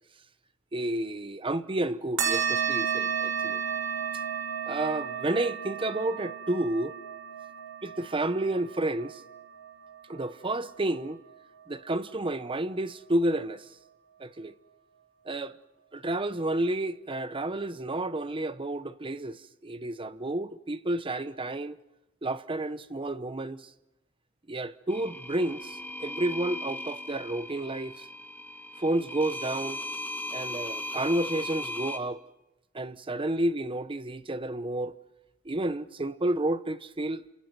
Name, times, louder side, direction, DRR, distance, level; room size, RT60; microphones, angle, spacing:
voice 1, 0.7-3.6 4.7-7.0 7.8-9.2 10.1-11.2 11.7-13.7 14.2-14.5 15.3-15.5 15.9-21.8 22.2-23.7 24.5-28.1 28.8-29.8 30.3-32.2 32.7-34.9 35.4-37.2, right 1 dB, 25° right, 0.9 m, -30 dB
sound 1, 2.2-11.1, right 7 dB, 80° right, 6.2 m, -33 dB
sound 2, 24.9-32.0, left 1 dB, 10° left, 1.8 m, -37 dB
28.5 x 27.0 x 6.1 m
head